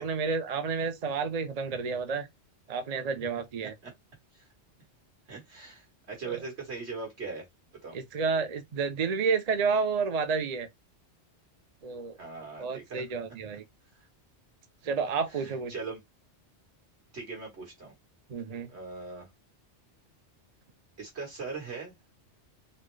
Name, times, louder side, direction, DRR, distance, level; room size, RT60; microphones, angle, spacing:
voice 1, 0.0-2.3 2.7-3.7 6.2-6.4 7.9-10.7 11.8-12.2 12.6-13.6 14.8-15.7 18.3-18.7, right 5 dB, 45° right, 0.5 m, -30 dB
voice 2, 5.3-7.5 7.8-8.0 12.2-13.1 15.3-16.0 17.1-17.9 18.7-19.3 21.0-21.9, right 4 dB, 70° right, 2.0 m, -40 dB
4.1 x 2.2 x 3.1 m
omnidirectional pair, 1.2 m